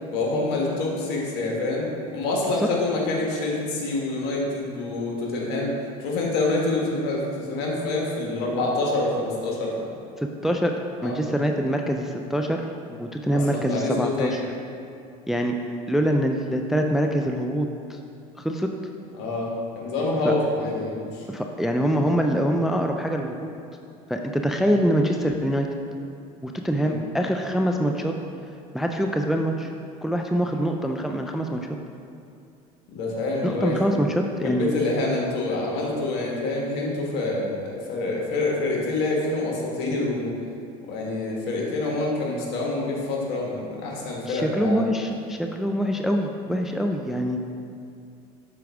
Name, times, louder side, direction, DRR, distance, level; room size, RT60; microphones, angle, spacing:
voice 1, 0.1-5.7 6.0-9.9 11.0-11.1 13.3-14.4 19.2-19.5 19.7-21.3 26.7-27.0 32.9-40.3 40.8-44.8, left 2 dB, 65° left, -2 dB, 1.4 m, -27 dB
voice 2, 10.2-10.7 11.0-12.6 12.9-14.4 15.3-15.6 15.9-18.0 18.4-18.7 20.2-20.3 21.3-23.5 24.1-25.7 26.4-28.1 28.7-29.7 30.0-31.7 33.4-34.7 44.3-47.4, equal, ahead, 3 dB, 0.3 m, -24 dB
6.1 x 4.5 x 3.5 m, 2.5 s
hypercardioid pair, 80°, 19 cm